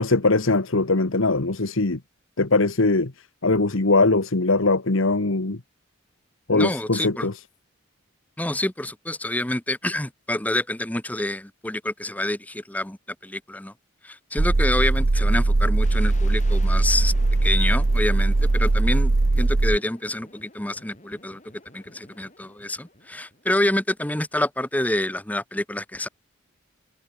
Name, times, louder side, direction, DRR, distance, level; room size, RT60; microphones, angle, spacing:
voice 1, 0.0-2.0 2.4-3.1 3.4-5.6 6.5-7.3, left 3 dB, 75° left, 1.4 m, -21 dB
voice 2, 6.5-7.3 8.4-13.0 13.2-13.7 14.0-17.1 17.4-19.1 19.4-21.4 21.7-26.1, left 1 dB, 5° left, 0.9 m, -27 dB
sound 1, 14.4-19.8, right 2 dB, 70° right, 1.0 m, -20 dB
sound 2, 15.8-23.7, left 2 dB, 35° left, 5.6 m, -49 dB
head